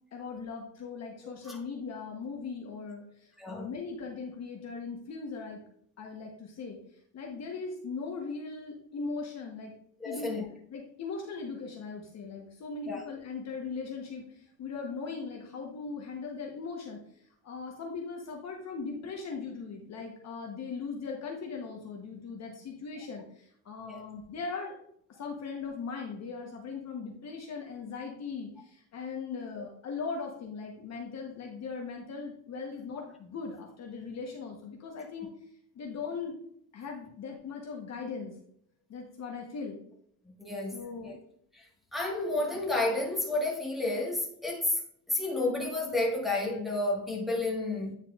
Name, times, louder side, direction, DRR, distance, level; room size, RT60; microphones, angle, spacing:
voice 1, 0.1-5.6 6.0-6.8 7.1-9.7 10.0-10.4 10.7-24.7 25.2-35.3 35.7-36.3 36.7-38.4 38.9-39.8 40.7-41.2, left 4 dB, 35° left, 0.9 m, -39 dB
voice 2, 3.4-3.7 10.0-10.5 12.9-13.0 23.8-24.0 29.5-29.7 40.4-41.2 41.5-44.8 45.1-47.9, left 2 dB, ahead, 1.4 m, -31 dB
9.0 x 4.4 x 2.3 m
cardioid pair, 135°, 46 cm